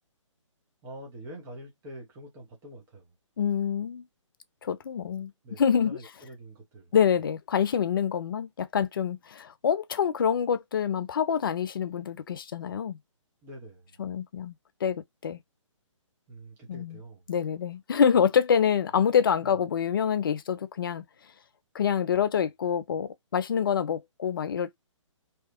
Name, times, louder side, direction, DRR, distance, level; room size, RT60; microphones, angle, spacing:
voice 1, 0.8-3.1 5.2-6.9 13.4-14.0 16.3-17.3 19.4-19.6, right 1 dB, 15° right, 0.7 m, -46 dB
voice 2, 3.4-4.0 4.6-5.3 5.6-6.0 6.9-13.0 14.0-14.6 14.8-15.4 16.7-17.0 17.3-21.0 21.7-24.8, left 7 dB, 45° left, 0.4 m, -26 dB
2.8 x 2.3 x 2.3 m
figure-of-eight pair, 135°, 17 cm